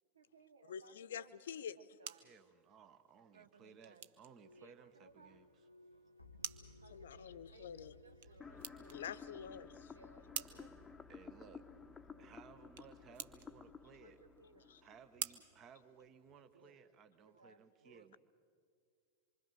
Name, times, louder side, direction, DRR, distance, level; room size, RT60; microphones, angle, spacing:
voice 1, 0.1-1.3 1.8-2.3 3.3-4.1 4.6-5.4 6.8-9.5 9.8-10.7 12.1-12.3 12.9-13.0 13.5-14.7 16.3-16.8 17.2-18.2, right 3 dB, 70° right, 8 dB, 1.3 m, -64 dB
voice 2, 0.7-1.8 6.6-7.9 8.9-9.9 14.7-14.8, left 8 dB, 60° left, 15 dB, 0.7 m, -47 dB
sound 1, 1.6-16.5, right 10 dB, 50° right, 0.9 m, -52 dB
voice 3, 2.2-5.5 11.1-11.6 12.2-14.2 14.8-18.2, right 6 dB, 30° right, 10 dB, 1.2 m, -60 dB
sound 2, 4.4-9.8, left 2 dB, 90° right, 1.3 m, -62 dB
sound 3, 8.4-15.4, left 5 dB, 10° left, 1.0 m, -54 dB
26.0 x 24.0 x 6.5 m, 2.2 s
figure-of-eight pair, 90°, 0 cm